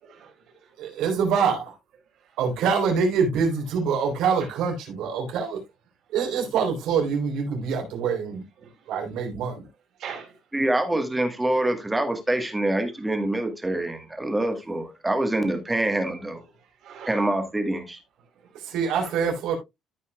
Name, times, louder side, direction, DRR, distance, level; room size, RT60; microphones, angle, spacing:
voice 1, 0.0-0.7 4.4-4.5 8.6-8.7 10.0-10.4 13.8-13.9 16.8-17.3 18.8-19.3, right 6 dB, 55° right, 3.8 m, -41 dB
voice 2, 0.8-1.7 2.4-5.6 6.1-8.4 8.9-9.6 18.6-19.6, right 6 dB, 80° right, 3.6 m, -25 dB
voice 3, 10.5-16.4 17.0-18.0, right 1 dB, 10° right, 1.4 m, -25 dB
14.0 x 5.5 x 2.3 m
cardioid pair, 165°, 0 cm